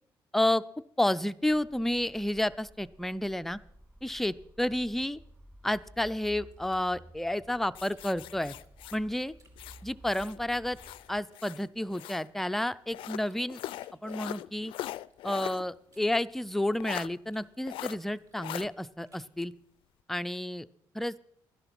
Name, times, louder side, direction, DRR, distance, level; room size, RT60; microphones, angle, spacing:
voice 1, 0.3-0.6 1.0-3.6 4.0-5.2 5.6-8.6 8.9-9.3 9.8-10.8 11.1-13.6 14.0-14.7 15.2-19.5 20.1-20.7 20.9-21.2, left 1 dB, 5° left, 12 dB, 0.4 m, -30 dB
sound 1, 1.4-11.2, right 1 dB, 15° right, 2.7 m, -54 dB
sound 2, 5.6-8.1 8.3-10.2 10.6-13.4 13.8-17.0 17.3-19.4, right 3 dB, 40° right, 2.6 m, -67 dB
sound 3, 7.7-10.4 10.7-12.3 12.9-15.7 16.0-16.1 16.8-17.1 17.7-18.0 18.4-18.7, left 14 dB, 75° left, 0.4 m, -41 dB
11.5 x 11.0 x 5.9 m, 0.71 s
cardioid pair, 120°, 9 cm